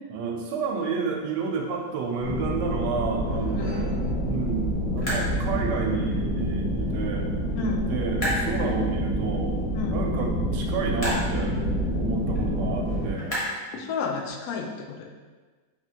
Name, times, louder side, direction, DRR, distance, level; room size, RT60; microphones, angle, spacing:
voice 1, 0.0-7.3 7.6-9.5 9.9-11.6 12.0-13.4, right 4 dB, 85° right, 2 dB, 1.2 m, -30 dB
sound 1, 1.1-14.4, equal, 25° left, 0.8 m, -38 dB
sound 2, 2.2-13.1, equal, 45° left, 1.2 m, -27 dB
voice 2, 13.7-15.1, left 5 dB, 70° left, 0 dB, 0.9 m, -31 dB
4.1 x 2.9 x 2.8 m, 1.4 s
omnidirectional pair, 1.9 m